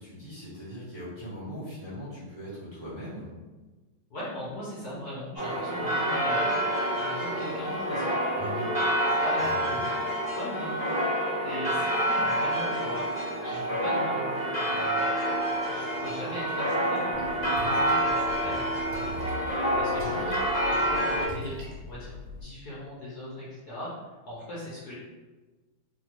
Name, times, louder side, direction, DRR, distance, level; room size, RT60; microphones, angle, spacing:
voice 1, 0.0-3.3 8.4-8.7 9.4-9.9, equal, 25° right, -12 dB, 0.7 m, -40 dB
voice 2, 4.1-6.5 6.9-8.2 9.2-9.9 10.3-10.8 11.4-15.1 15.7-18.7 19.7-20.3 20.7-21.6 21.9-24.9, left 1 dB, 65° left, -8 dB, 1.1 m, -39 dB
sound 1, 5.4-21.2, right 1 dB, 15° left, 0.7 m, -28 dB
Splash splatter, 17.1-22.4, left 1 dB, 70° right, 1.2 m, -41 dB
3.4 x 2.3 x 2.9 m, 1.3 s
omnidirectional pair, 2.3 m